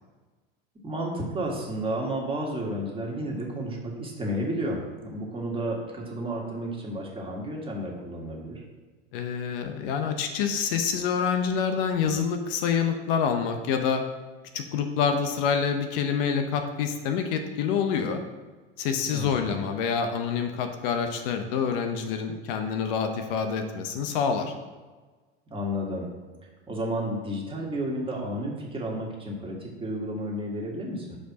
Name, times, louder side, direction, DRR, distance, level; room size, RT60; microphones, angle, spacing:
voice 1, 0.8-8.6 19.1-19.6 25.5-26.1 26.7-31.2, right 1 dB, 15° right, -2 dB, 1.7 m, -32 dB
voice 2, 9.1-14.1 14.5-18.2 18.8-24.5, left 6 dB, 65° left, 6 dB, 0.8 m, -27 dB
4.8 x 4.5 x 5.8 m, 1.3 s
hypercardioid pair, 90°, 30 cm